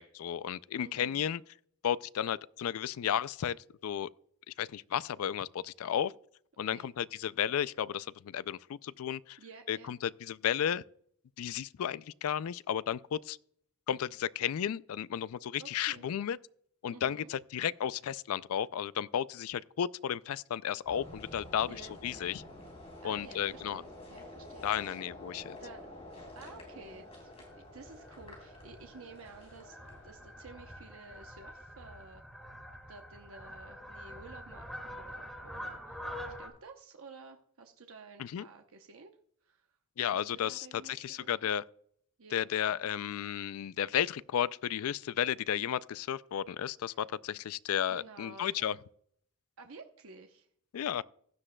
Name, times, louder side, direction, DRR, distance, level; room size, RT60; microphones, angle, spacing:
voice 1, 0.0-1.4 1.8-3.6 3.8-4.1 4.6-6.1 6.6-9.4 9.7-10.8 11.4-13.4 13.9-16.4 16.8-21.7 22.0-22.4 23.0-23.8 24.6-25.6 38.2-38.5 40.0-41.6 42.3-48.8 50.7-51.0, left 9 dB, 80° left, 0.3 m, -33 dB
voice 2, 0.8-1.3 6.7-6.9 9.4-9.9 15.6-16.0 16.9-17.3 21.7-22.3 23.0-25.0 25.6-25.8 26.3-29.8 30.0-32.2 32.9-36.0 36.4-39.1 39.4-39.7 40.1-41.5 42.2-42.5 46.9-47.0 47.9-48.8 49.6-50.5, right 4 dB, 70° right, 0.8 m, -52 dB
sound 1, 20.8-32.1, left 1 dB, 25° left, 3.7 m, -50 dB
Fowl, 27.1-36.5, equal, ahead, 1.6 m, -46 dB
16.0 x 9.9 x 2.2 m
head